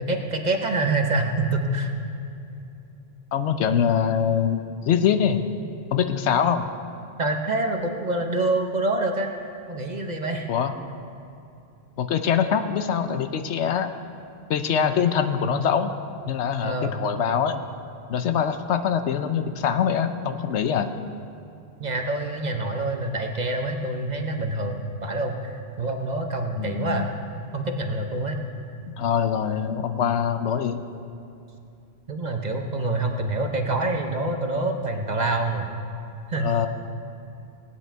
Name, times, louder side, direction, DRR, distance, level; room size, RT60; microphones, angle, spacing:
voice 1, 0.0-1.9 7.2-9.3 9.7-10.5 14.8-15.0 16.6-17.0 21.8-27.1 27.5-28.4 32.1-35.7 36.3-36.5, right 2 dB, 40° right, 4 dB, 0.9 m, -26 dB
voice 2, 3.3-5.4 5.9-6.7 10.5-10.7 12.0-13.9 14.5-15.9 16.3-17.6 18.1-20.9 26.6-27.1 28.9-30.8 36.4-36.7, left 8 dB, 75° left, 9 dB, 0.9 m, -23 dB
18.0 x 9.5 x 4.5 m, 2.7 s
omnidirectional pair, 1.2 m